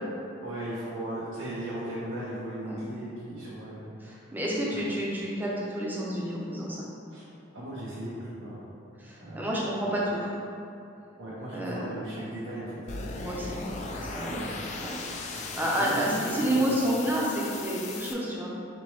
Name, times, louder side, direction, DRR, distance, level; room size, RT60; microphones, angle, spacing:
voice 1, 0.4-4.1 4.7-4.8 7.1-7.3 7.5-8.7 9.2-9.6 11.2-13.0 14.0-14.5 15.3-15.5 15.8-16.7, right 1 dB, 80° right, -10 dB, 0.8 m, -37 dB
voice 2, 4.0-6.9 9.0-10.3 11.5-11.9 13.2-13.6 13.9-14.4 14.8-15.0 15.2-18.5, equal, 10° right, -5 dB, 0.6 m, -30 dB
sound 1, 12.9-18.1, left 3 dB, 35° left, 0.3 m, -38 dB
4.3 x 3.2 x 3.2 m, 2.6 s
head